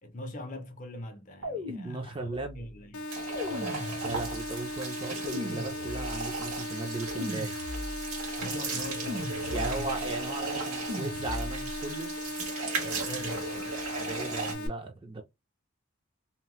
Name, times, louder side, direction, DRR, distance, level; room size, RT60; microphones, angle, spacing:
voice 1, 0.0-3.1 3.4-4.2 8.4-9.9 12.8-13.7, left 1 dB, 35° left, 0.5 m, -42 dB
sound 1, 1.4-2.6 3.3-4.5 5.3-6.4 7.2-8.2 9.1-10.0 10.9-11.8, left 1 dB, 65° right, 1.2 m, -38 dB
voice 2, 1.7-2.6 4.0-7.5 9.5-12.1 14.0-15.2, right 2 dB, 25° right, 0.4 m, -37 dB
sound 2, 2.9-14.7, left 1 dB, 85° left, 0.6 m, -38 dB
sound 3, 3.1-14.6, right 4 dB, 85° right, 1.2 m, -37 dB
2.8 x 2.1 x 3.0 m
head